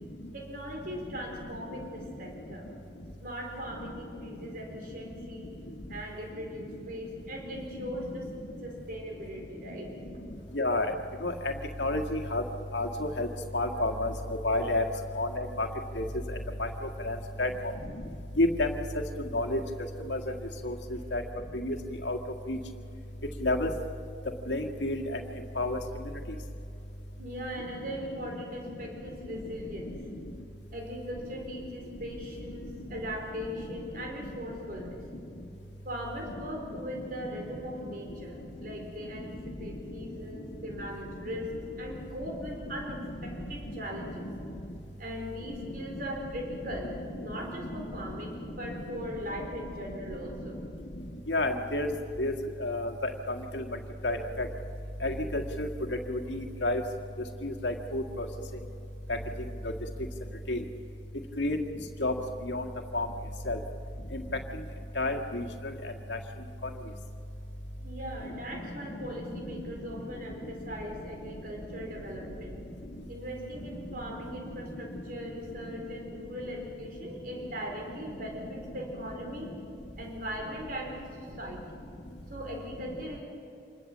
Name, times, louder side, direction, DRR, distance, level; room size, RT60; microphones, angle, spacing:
voice 1, 0.3-2.7 3.2-5.5 5.9-8.3 8.6-9.9 17.3-17.6 27.2-29.9 30.7-35.0 35.8-44.3 45.0-50.6 67.8-72.5 73.1-79.5 80.0-81.6 82.3-83.2, equal, 50° right, 1 dB, 4.3 m, -39 dB
voice 2, 10.5-10.9 11.2-11.5 11.8-12.4 12.7-13.3 13.5-14.1 14.4-14.8 15.2-15.7 16.0-16.1 16.6-16.7 17.0-17.5 18.4-18.7 19.3-19.6 20.1-20.2 20.6-20.7 21.1-21.2 21.5-21.7 22.1-22.2 22.5-22.6 23.4-23.7 24.5-25.2 25.6-25.8 44.2-44.3 51.3-51.9 52.2-52.3 52.6-53.6 54.0-54.5 55.0-55.7 56.1-56.8 57.4-58.2 60.5-60.6 61.4-61.6 62.0-62.1 62.4-62.6 62.9-63.1 63.5-63.6 64.1-64.2 65.0-65.4 66.1-66.2 69.3-69.4, left 2 dB, 80° left, 3 dB, 1.9 m, -29 dB
26.5 x 20.5 x 7.4 m, 2.7 s
head